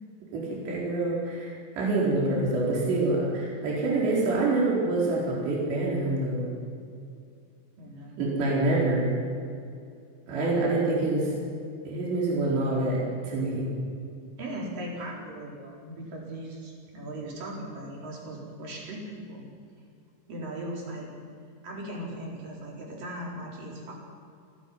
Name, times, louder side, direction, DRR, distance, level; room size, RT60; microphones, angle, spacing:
voice 1, 0.3-6.5 8.2-9.1 10.3-11.3 11.8-13.7, right 2 dB, 70° right, -5 dB, 6.8 m, -26 dB
voice 2, 7.8-8.2 14.4-19.5 20.3-21.1 21.6-23.9, right 1 dB, 50° right, -3 dB, 5.9 m, -38 dB
29.0 x 12.0 x 9.4 m, 2.4 s
omnidirectional pair, 5.2 m